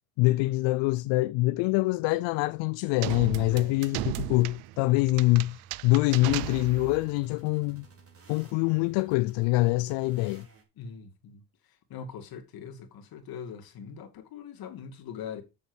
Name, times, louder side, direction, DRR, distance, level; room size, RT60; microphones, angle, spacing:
voice 1, 0.2-7.8 8.3-10.5, left 20 dB, 70° left, 0.6 m, -25 dB
sound 1, 3.0-7.1, right 20 dB, 90° right, 0.6 m, -36 dB
voice 2, 3.5-3.8 10.8-11.4 11.9-15.4, left 7 dB, 50° left, 2.4 m, -42 dB
sound 2, 3.9-10.6, right 5 dB, 30° right, 3.7 m, -55 dB
7.1 x 6.9 x 6.3 m
cardioid pair, 140°, 46 cm